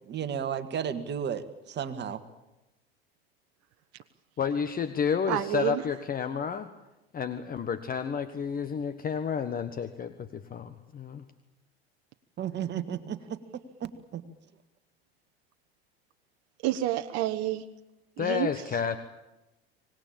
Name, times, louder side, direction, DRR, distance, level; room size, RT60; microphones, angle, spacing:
voice 1, 0.1-2.2 12.4-13.4 13.8-14.2, right 8 dB, 35° right, 10 dB, 1.9 m, -33 dB
voice 2, 4.4-6.7 7.1-11.3 18.2-19.0, left 7 dB, 30° left, 10 dB, 1.4 m, -31 dB
voice 3, 5.3-5.8 16.6-17.6 18.2-18.5, right 15 dB, 50° right, 7 dB, 1.2 m, -29 dB
25.0 x 19.5 x 8.8 m, 0.97 s
hypercardioid pair, 90°, 31 cm